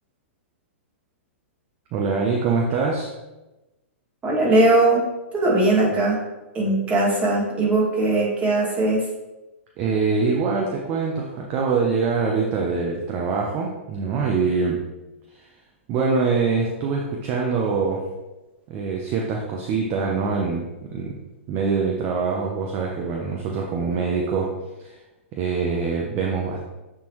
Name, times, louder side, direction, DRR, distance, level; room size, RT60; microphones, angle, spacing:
voice 1, 1.9-3.1 9.8-14.8 15.3-15.5 15.9-18.0 18.7-20.7 20.9-21.1 21.5-24.5 24.8-25.0 25.3-26.7, right 4 dB, 35° right, -1 dB, 0.9 m, -24 dB
voice 2, 4.2-6.2 6.5-9.0, right 2 dB, 20° right, -5 dB, 2.1 m, -20 dB
8.6 x 3.8 x 3.1 m, 1.0 s
figure-of-eight pair, 110°, 7 cm